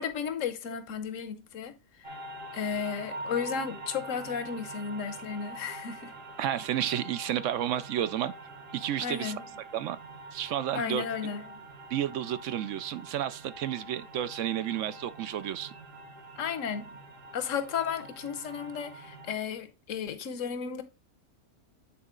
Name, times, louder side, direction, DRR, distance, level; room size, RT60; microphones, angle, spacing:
voice 1, 0.0-1.7 2.5-6.1 9.0-9.4 10.7-11.6 16.4-16.9 17.3-20.8, left 7 dB, 65° left, 1.2 m, -34 dB
sound 1, 2.0-19.3, right 2 dB, 40° right, 1.1 m, -45 dB
voice 2, 6.4-8.3 8.7-9.3 9.7-10.0 10.3-11.0 11.9-15.7, right 11 dB, 70° right, 0.8 m, -31 dB
8.7 x 4.0 x 3.7 m
omnidirectional pair, 1.5 m